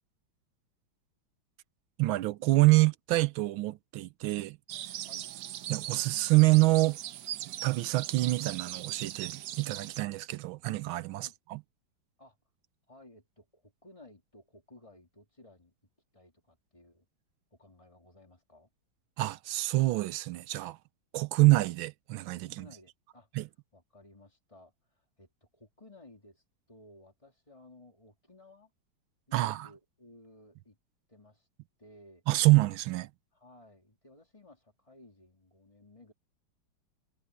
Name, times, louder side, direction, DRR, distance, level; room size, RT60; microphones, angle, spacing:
voice 1, 2.0-4.6 5.7-7.0 7.6-11.6 19.2-20.8 21.1-22.7 23.4-23.5 29.3-29.7 32.3-33.1, right 20 dB, 85° right, 1.5 m, -26 dB
sound 1, 4.7-10.0, right 12 dB, 70° right, 1.2 m, -40 dB
voice 2, 12.9-15.7 16.1-17.1 17.5-18.7 22.5-23.3 23.7-28.7 29.3-30.8 31.1-31.5 31.8-32.2 33.3-36.1, left 1 dB, 15° left, 3.2 m, -57 dB
omnidirectional pair, 2.1 m